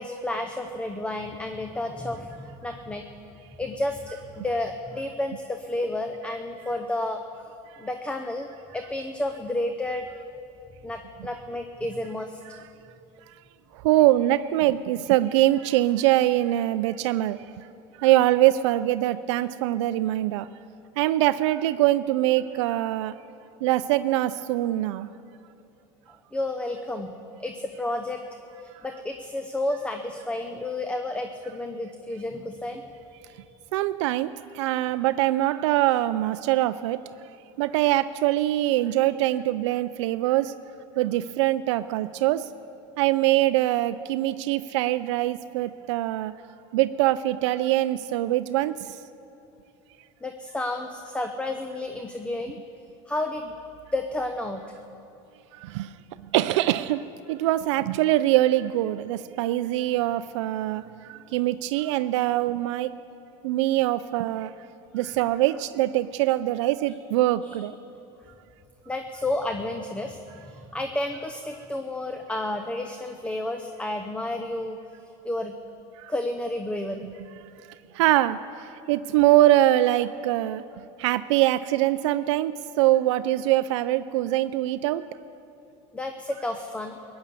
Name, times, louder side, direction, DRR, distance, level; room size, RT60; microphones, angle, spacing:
voice 1, 0.0-3.0 3.6-7.2 7.8-8.5 8.7-10.0 10.8-12.4 26.3-27.1 27.4-28.2 28.6-32.8 50.2-52.6 53.1-53.5 53.9-54.6 61.3-61.4 64.9-65.6 67.4-67.7 68.9-74.8 75.2-75.5 76.1-77.1 85.9-87.0, left 1 dB, 10° left, 5 dB, 0.7 m, -31 dB
voice 2, 13.7-17.4 18.0-20.5 21.0-23.1 23.6-25.1 33.7-37.0 37.6-40.5 41.0-42.5 43.0-46.3 46.7-49.0 55.5-55.9 56.3-62.9 63.4-64.5 64.9-67.8 76.0-76.1 77.9-80.6 81.0-85.0, right 15 dB, 80° right, 12 dB, 0.4 m, -23 dB
17.0 x 9.7 x 6.8 m, 2.9 s
supercardioid pair, 125°, 15 cm